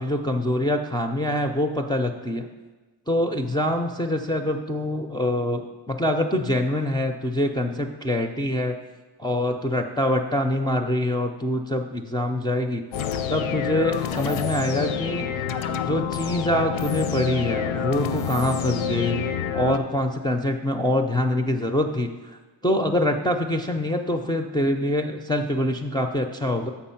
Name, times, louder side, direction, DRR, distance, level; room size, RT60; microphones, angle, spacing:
voice 1, 0.0-2.5 3.1-8.8 9.2-12.8 13.3-15.5 15.9-26.7, left 1 dB, 10° left, 2 dB, 0.3 m, -25 dB
sound 1, 12.9-19.8, left 7 dB, 85° left, 0.6 m, -27 dB
6.9 x 5.3 x 5.6 m, 1.2 s
wide cardioid pair, 105°, 46 cm